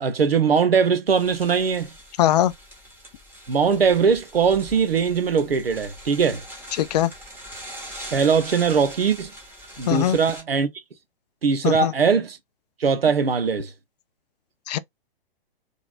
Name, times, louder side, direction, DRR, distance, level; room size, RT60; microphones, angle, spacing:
voice 1, 0.0-1.9 3.5-6.4 8.1-9.3 9.8-10.7 11.4-12.4 12.8-13.7, right 6 dB, 80° right, 0.9 m, -20 dB
sound 1, 1.1-10.4, equal, 10° right, 1.8 m, -42 dB
voice 2, 2.2-2.5 6.7-7.1 9.9-10.2 11.6-11.9 14.7-14.8, left 12 dB, 45° left, 0.4 m, -21 dB
3.8 x 3.4 x 2.4 m
figure-of-eight pair, 115°, 29 cm